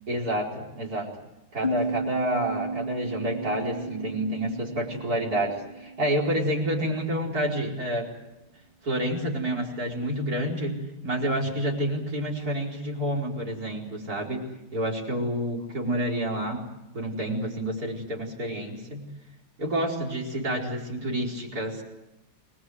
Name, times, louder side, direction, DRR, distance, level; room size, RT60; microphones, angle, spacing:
voice 1, 0.1-1.2 1.5-8.1 8.8-14.4 14.7-16.6 16.9-19.1 19.6-21.8, right 1 dB, 45° right, 2 dB, 5.1 m, -29 dB
sound 1, 1.6-7.0, right 2 dB, 20° right, 2.8 m, -34 dB
29.5 x 20.5 x 8.0 m, 0.92 s
omnidirectional pair, 2.2 m